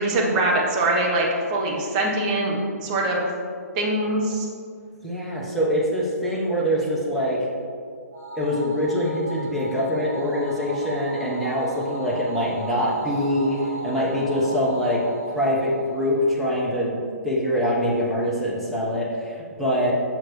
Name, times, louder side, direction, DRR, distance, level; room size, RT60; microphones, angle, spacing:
voice 1, 0.0-3.3 3.8-4.5, right 2 dB, 30° right, -2 dB, 1.2 m, -23 dB
voice 2, 5.0-7.5 8.4-15.0 15.3-17.0 17.2-19.9, equal, ahead, -6 dB, 1.1 m, -24 dB
sound 1, 8.1-16.7, right 1 dB, 75° right, 1.7 m, -37 dB
7.7 x 5.8 x 3.2 m, 2.2 s
figure-of-eight pair, 130°, 9 cm